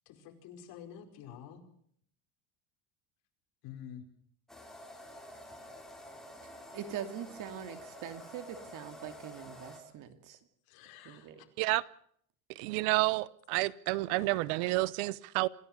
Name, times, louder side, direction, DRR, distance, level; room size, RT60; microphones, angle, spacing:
voice 1, 0.0-1.6 3.6-4.0 10.6-11.5, left 9 dB, 55° left, 4 dB, 5.1 m, -49 dB
sound 1, 4.5-9.8, equal, ahead, 4.2 m, -49 dB
voice 2, 6.7-10.4 11.0-11.4, right 9 dB, 45° right, 9 dB, 2.5 m, -43 dB
voice 3, 12.6-15.5, right 20 dB, 80° right, 19 dB, 1.0 m, -30 dB
27.5 x 15.5 x 6.7 m, 0.64 s
cardioid pair, 150°, 43 cm